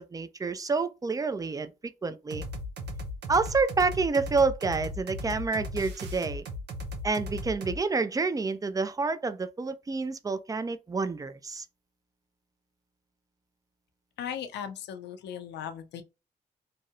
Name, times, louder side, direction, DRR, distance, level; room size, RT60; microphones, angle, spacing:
voice 1, 0.0-2.5 3.3-6.5 7.0-11.7, right 4 dB, 20° right, 0.4 m, -28 dB
sound 1, 2.3-7.8, left 1 dB, 85° right, 0.5 m, -37 dB
voice 2, 14.2-16.0, left 8 dB, 85° left, 0.4 m, -37 dB
2.7 x 2.0 x 2.4 m
supercardioid pair, 50°, 17 cm